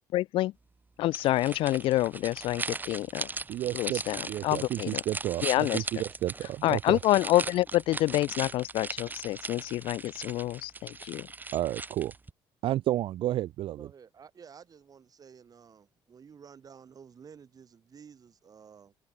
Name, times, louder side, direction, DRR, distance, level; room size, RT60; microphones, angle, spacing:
voice 1, 0.1-0.5 1.0-3.3 3.7-5.0 5.4-5.9 6.6-11.3, left 16 dB, 70° left, 0.4 m, -27 dB
sound 1, 1.1-12.3, right 3 dB, 20° right, 1.2 m, -39 dB
voice 2, 3.5-4.0 4.3-7.0 11.5-12.1 12.6-13.9, right 14 dB, 65° right, 0.6 m, -31 dB
voice 3, 13.8-18.9, right 7 dB, 40° right, 5.8 m, -52 dB
cardioid pair, 95°, 9 cm